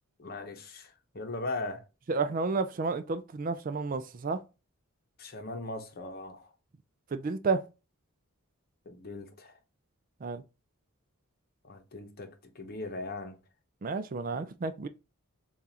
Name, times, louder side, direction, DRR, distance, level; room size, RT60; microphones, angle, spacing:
voice 1, 0.2-1.8 5.2-6.5 8.9-9.6 11.6-13.4, left 2 dB, 45° left, 0.8 m, -39 dB
voice 2, 2.1-4.4 7.1-7.6 10.2-10.4 13.8-14.9, right 4 dB, 40° right, 0.4 m, -31 dB
7.0 x 2.5 x 2.8 m
head